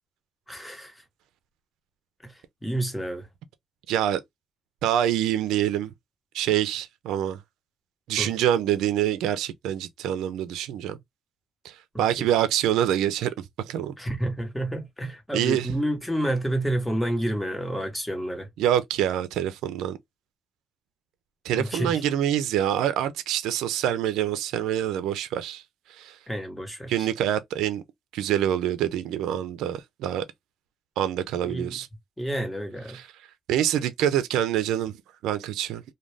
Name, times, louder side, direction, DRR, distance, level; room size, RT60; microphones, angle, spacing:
voice 1, 0.5-1.0 2.2-3.3 8.2-8.3 11.9-12.3 14.0-18.5 21.5-22.0 26.3-27.1 31.4-31.8 32.2-33.0, right 1 dB, 5° left, 1.1 m, -29 dB
voice 2, 3.9-4.2 4.8-5.9 6.3-7.4 8.1-11.0 11.6-13.3 13.7-13.9 15.3-15.7 18.6-20.0 21.4-25.6 26.0-26.1 26.9-27.8 28.1-30.2 31.0-31.9 33.5-34.9 35.2-35.8, right 11 dB, 90° right, 0.4 m, -25 dB
2.5 x 2.2 x 3.2 m
cardioid pair, 90°, 0 cm